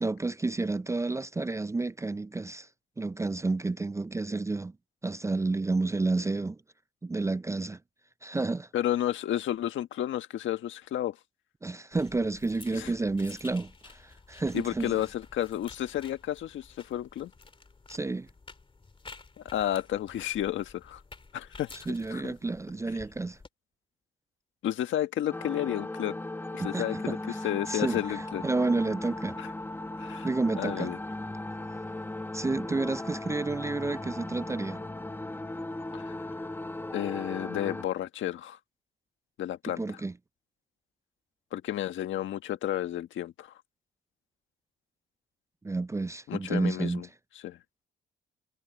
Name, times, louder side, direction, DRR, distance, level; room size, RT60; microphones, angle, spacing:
voice 1, 0.0-2.7 3.0-4.7 5.0-6.6 7.0-7.8 8.2-8.7 11.6-15.0 17.9-18.3 21.9-23.4 26.6-27.2 27.7-28.2 28.4-29.4 30.2-30.9 32.3-34.8 39.8-40.1 45.6-47.0, right 3 dB, 15° right, 0.4 m, -30 dB
voice 2, 8.7-11.2 12.7-12.9 14.5-17.3 19.4-21.0 21.3-21.7 22.1-22.3 24.6-26.2 26.5-27.2 27.4-28.4 29.4-29.5 30.0-30.3 30.6-31.0 35.9-36.1 36.9-38.6 39.4-40.0 41.5-43.5 46.3-47.1 47.4-47.6, left 12 dB, 75° left, 1.6 m, -31 dB
sound 1, 11.9-23.5, left 4 dB, 25° left, 2.6 m, -52 dB
sound 2, 25.3-37.8, left 2 dB, 10° left, 1.4 m, -37 dB
cardioid pair, 90°, 20 cm